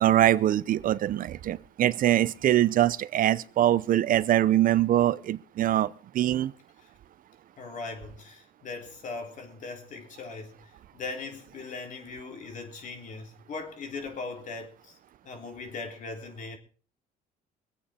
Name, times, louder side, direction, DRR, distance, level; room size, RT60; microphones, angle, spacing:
voice 1, 0.0-6.5, right 12 dB, 55° right, 0.7 m, -23 dB
voice 2, 7.6-15.0 15.2-16.6, left 4 dB, 50° left, 3.6 m, -39 dB
24.0 x 8.7 x 4.3 m
cardioid pair, 110°, 17 cm